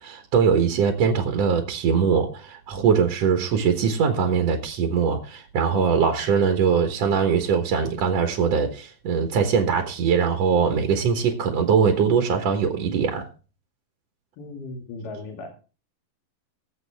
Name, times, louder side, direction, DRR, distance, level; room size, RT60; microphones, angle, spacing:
voice 1, 0.0-13.3, right 6 dB, 55° right, 2.1 m, -22 dB
voice 2, 14.4-15.5, left 2 dB, 70° left, 3.9 m, -36 dB
21.0 x 7.8 x 3.5 m
omnidirectional pair, 4.2 m